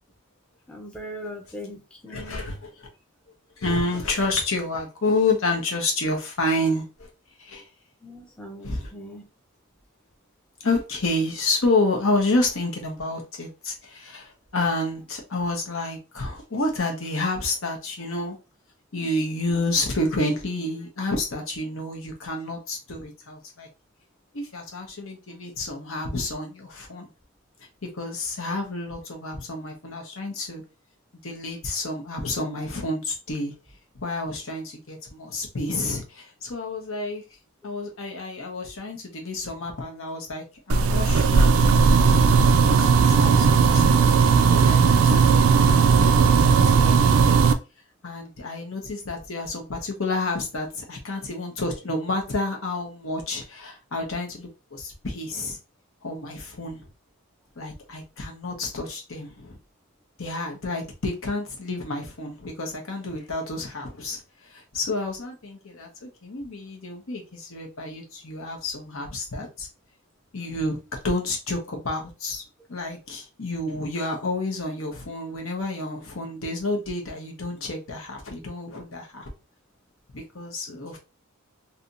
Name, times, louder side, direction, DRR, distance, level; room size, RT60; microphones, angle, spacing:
voice 1, 0.7-2.4 8.0-9.3, equal, 5° left, 0.6 m, -40 dB
voice 2, 2.1-2.9 3.6-7.1 7.4-7.6 8.6-8.9 10.6-18.4 18.9-23.7 24.3-27.1 27.8-30.6 31.2-33.5 33.9-37.2 37.6-41.8 42.1-47.4 48.0-55.6 56.0-56.8 57.6-59.6 60.2-69.7 70.3-70.8 71.0-72.4 72.7-79.3 80.1-81.0, left 2 dB, 70° left, 1.1 m, -29 dB
sound 1, 40.7-47.5, right 5 dB, 80° right, 0.4 m, -17 dB
3.3 x 2.8 x 2.6 m
head